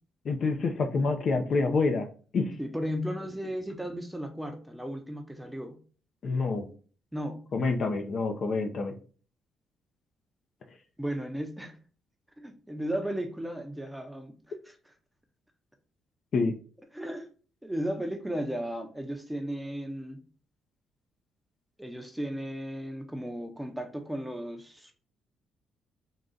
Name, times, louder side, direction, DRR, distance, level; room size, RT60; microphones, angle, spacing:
voice 1, 0.3-2.1 2.3-2.5 6.2-6.7 7.5-8.9 16.3-16.5, left 3 dB, 55° left, 0.5 m, -27 dB
voice 2, 2.6-5.8 7.1-7.5 11.0-11.8 12.4-14.9 16.9-17.3 17.6-20.2 21.8-24.9, equal, 5° right, 0.6 m, -35 dB
3.8 x 2.3 x 3.7 m
cardioid pair, 90°, 0 cm